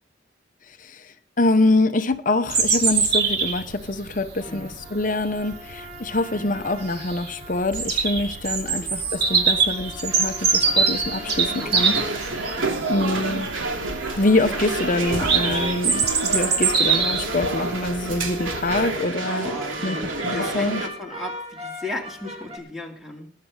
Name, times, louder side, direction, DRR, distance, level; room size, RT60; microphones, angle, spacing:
voice 1, 0.8-11.9 12.9-13.5 14.2-19.5 19.8-20.0 20.2-20.8, left 2 dB, 40° left, 10 dB, 0.8 m, -25 dB
Bird vocalization bird call bird song, 2.5-18.9, right 5 dB, 50° right, 2.9 m, -25 dB
voice 2, 4.4-4.8 6.3-6.6 8.7-9.0 11.5-11.7 12.6-12.9 19.1-23.3, left 1 dB, ahead, 1 dB, 2.3 m, -36 dB
sound 1, 4.4-8.4 9.0-13.4 13.9-19.1 19.7-22.6, left 1 dB, 30° right, 2.7 m, -40 dB
sound 2, 9.3-20.9, right 2 dB, 85° right, 2.8 m, -29 dB
20.5 x 8.5 x 4.8 m, 0.43 s
head